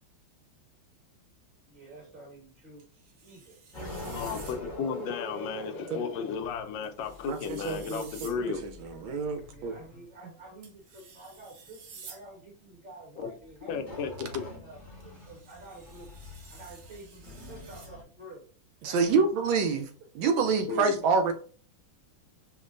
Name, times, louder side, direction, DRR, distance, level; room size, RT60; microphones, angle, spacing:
voice 1, 1.7-2.8 3.2-3.6 9.4-14.0 14.6-16.1 16.5-18.4 18.8-19.2 20.7-21.1, right 2 dB, 30° right, 1.1 m, -49 dB
sound 1, 2.8-4.6 6.8-8.4 10.6-12.2 15.0-17.9, right 5 dB, 65° right, 0.8 m, -51 dB
sound 2, 3.7-10.0 13.6-18.0, left 2 dB, 40° left, 0.7 m, -43 dB
voice 2, 4.1-8.6 13.2-13.3 13.7-14.4 20.7-21.0, left 6 dB, 75° left, 1.2 m, -34 dB
voice 3, 7.3-9.7 18.8-19.9 20.1-21.3, right 5 dB, 80° right, 1.4 m, -27 dB
5.0 x 2.1 x 2.5 m
omnidirectional pair, 2.2 m